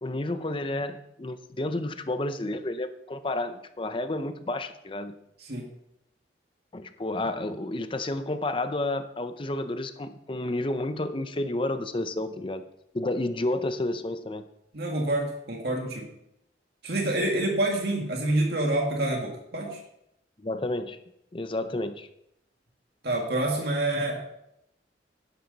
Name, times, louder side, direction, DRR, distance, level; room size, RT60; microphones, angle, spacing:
voice 1, 0.0-5.2 6.7-12.6 12.9-14.4 20.4-21.0 21.3-22.1, left 2 dB, 30° left, 10 dB, 0.7 m, -31 dB
voice 2, 14.7-16.1 16.8-19.8 23.0-24.3, right 1 dB, 60° right, 0 dB, 2.1 m, -27 dB
11.5 x 10.5 x 4.1 m, 0.80 s
head